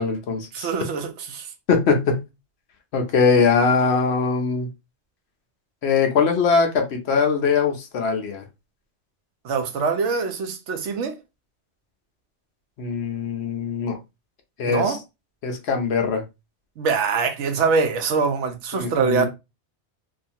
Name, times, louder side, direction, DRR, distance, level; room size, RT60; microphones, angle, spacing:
voice 1, 0.0-0.7 1.7-2.2 2.9-4.7 5.8-8.4 12.8-14.0 14.6-15.0 15.4-16.2 18.7-19.3, left 5 dB, 70° left, 0.9 m, -21 dB
voice 2, 0.5-1.5 9.4-11.1 14.7-15.0 16.8-19.3, right 5 dB, 85° right, 1.0 m, -23 dB
2.7 x 2.4 x 2.7 m
omnidirectional pair, 1.2 m